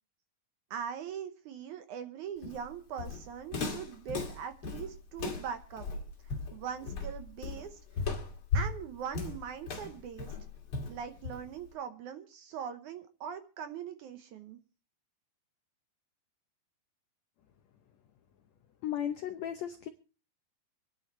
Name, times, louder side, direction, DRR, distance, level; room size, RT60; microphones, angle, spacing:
voice 1, 0.7-5.9 6.2-7.8 8.5-10.3 10.9-14.6, right 8 dB, 70° right, 9 dB, 2.0 m, -41 dB
Walk footsteps, 2.4-11.7, left 4 dB, 40° left, 2.7 m, -36 dB
voice 2, 18.8-19.9, left 10 dB, 90° left, 8 dB, 1.5 m, -35 dB
26.0 x 10.5 x 3.0 m, 0.35 s
omnidirectional pair, 4.3 m